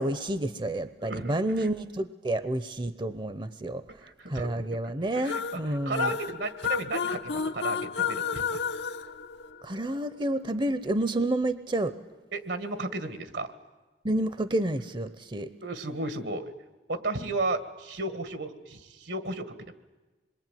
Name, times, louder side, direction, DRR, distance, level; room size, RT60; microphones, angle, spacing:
voice 1, 0.0-3.8 4.3-6.2 9.6-11.9 14.0-15.5, right 1 dB, 30° right, 13 dB, 0.8 m, -29 dB
voice 2, 1.0-1.7 4.0-4.8 5.1-8.6 12.3-13.5 15.6-16.5 16.9-19.5, right 2 dB, 80° right, 11 dB, 1.9 m, -34 dB
sound 1, 5.2-10.0, left 6 dB, 80° left, 1.3 m, -32 dB
26.5 x 22.0 x 9.2 m, 1.2 s
head